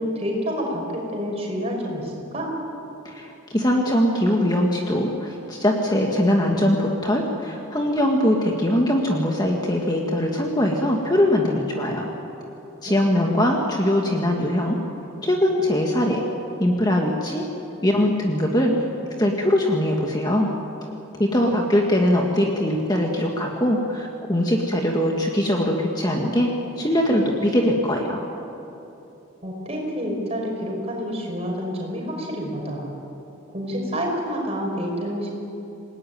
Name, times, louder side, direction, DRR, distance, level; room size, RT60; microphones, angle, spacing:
voice 1, 0.0-2.5 12.9-13.5 29.4-32.9 33.5-35.3, equal, 30° right, 0 dB, 6.0 m, -28 dB
voice 2, 3.1-12.1 12.8-14.8 15.2-16.2 16.6-17.4 17.8-18.8 19.2-20.5 21.2-28.2, left 1 dB, 20° left, 0 dB, 1.9 m, -21 dB
28.0 x 18.5 x 9.4 m, 2.8 s
head